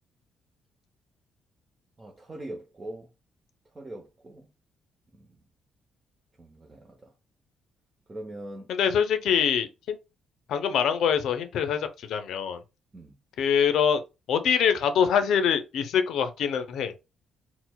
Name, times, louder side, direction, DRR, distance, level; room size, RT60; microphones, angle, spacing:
voice 1, 2.0-3.1 3.7-4.5 5.1-5.4 6.4-7.1 8.1-8.7 12.9-13.1, right 1 dB, 25° right, 0.7 m, -42 dB
voice 2, 8.7-10.0 10.5-12.6 13.4-14.0 14.3-16.9, left 7 dB, 75° left, 0.4 m, -24 dB
4.3 x 2.0 x 2.2 m
cardioid pair, 90°, 0 cm